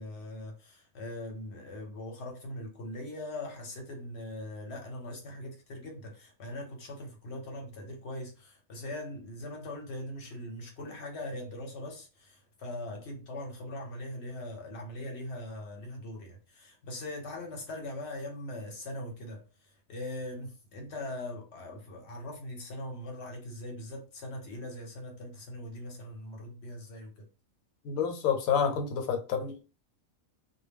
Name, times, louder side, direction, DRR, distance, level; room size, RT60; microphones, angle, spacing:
voice 1, 0.0-27.3, left 1 dB, 60° left, 0.9 m, -41 dB
voice 2, 27.8-29.5, left 7 dB, 85° left, 1.0 m, -28 dB
2.2 x 2.1 x 3.3 m
omnidirectional pair, 1.5 m